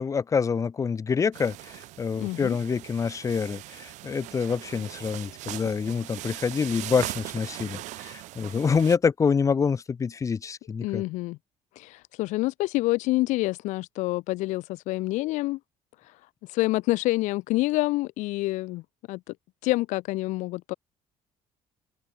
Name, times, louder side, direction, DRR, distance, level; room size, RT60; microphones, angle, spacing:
voice 1, 0.0-11.0, left 6 dB, 25° left, 2.2 m, -26 dB
sound 1, 1.3-9.0, right 17 dB, 80° right, 3.2 m, -40 dB
voice 2, 2.2-2.6 10.8-11.4 11.8-15.6 16.5-18.8 19.1-19.2 19.6-20.7, left 19 dB, 90° left, 6.9 m, -27 dB
open air
cardioid pair, 145°, 12 cm